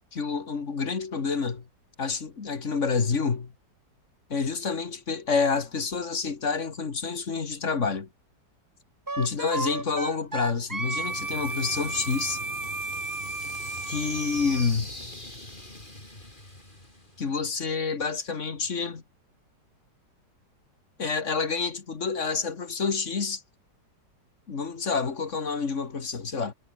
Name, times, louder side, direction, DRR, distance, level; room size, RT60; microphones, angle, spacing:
voice 1, 0.1-1.6 2.0-3.5 4.3-8.1 9.2-12.4 13.9-14.9 17.2-19.0 21.0-23.4 24.5-26.5, left 5 dB, 40° left, 2.0 m, -28 dB
Wind instrument woodwind instrument, 9.1-14.7, right 3 dB, 30° right, 0.3 m, -33 dB
sound 1, 10.7-17.6, left 1 dB, 25° left, 5.5 m, -41 dB
omnidirectional pair, 2.0 m